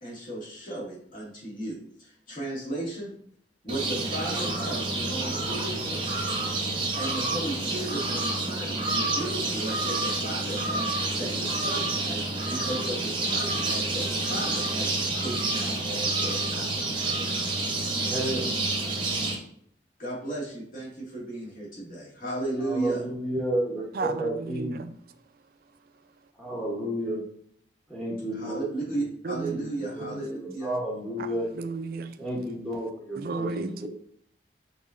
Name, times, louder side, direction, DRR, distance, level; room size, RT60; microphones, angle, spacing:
voice 1, 0.0-3.1 3.6-6.2 7.0-10.9 11.2-14.9 15.2-17.2 20.0-23.0 28.3-30.7, right 1 dB, 50° left, 2.0 m, -35 dB
sound 1, 3.7-19.3, right 2 dB, 30° right, 0.8 m, -29 dB
voice 2, 18.1-18.5 22.6-24.8 26.4-27.2 27.9-28.7 28.9-29.1 29.5-29.6 30.0-31.5 32.2-33.9, right 1 dB, 5° left, 0.9 m, -31 dB
voice 3, 23.9-25.0 29.2-29.7 30.1-30.2 31.2-32.2 33.2-33.9, right 4 dB, 55° right, 0.4 m, -34 dB
5.5 x 3.8 x 2.5 m
head